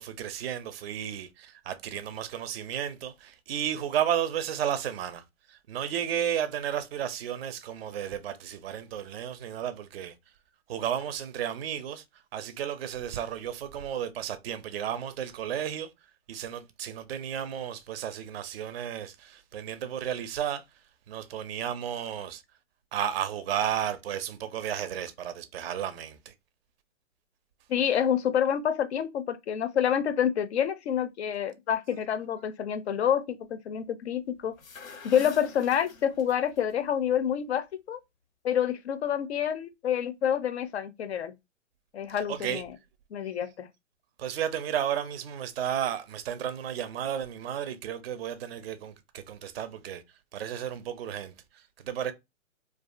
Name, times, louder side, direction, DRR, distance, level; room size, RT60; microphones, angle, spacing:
voice 1, 0.0-10.1 10.7-15.9 16.3-20.6 21.1-22.4 22.9-26.3 42.3-42.6 44.2-50.0 50.3-52.1, right 9 dB, 50° right, 0.4 m, -33 dB
voice 2, 27.7-34.6 35.0-38.0 38.4-41.3 41.9-42.7 43.1-43.7, left 9 dB, 55° left, 0.5 m, -28 dB
sound 1, 34.4-36.6, left 4 dB, 90° left, 0.7 m, -45 dB
2.4 x 2.3 x 2.4 m
hypercardioid pair, 130°, 39 cm